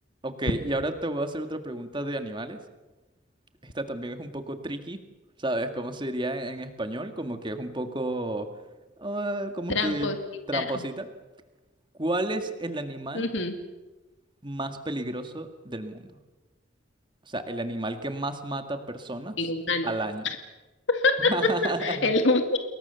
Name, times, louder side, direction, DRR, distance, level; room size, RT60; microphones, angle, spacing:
voice 1, 0.2-2.6 3.6-5.0 5.4-8.5 9.0-10.1 10.5-11.1 12.0-13.3 14.4-16.1 17.3-19.4 19.8-20.3 21.2-22.1, right 1 dB, 25° right, 7 dB, 1.9 m, -31 dB
voice 2, 9.7-10.2 10.5-10.8 13.1-13.5 19.4-19.9 20.9-21.5 21.8-22.6, left 3 dB, 75° left, 6 dB, 2.2 m, -25 dB
29.5 x 21.5 x 7.0 m, 1.1 s
head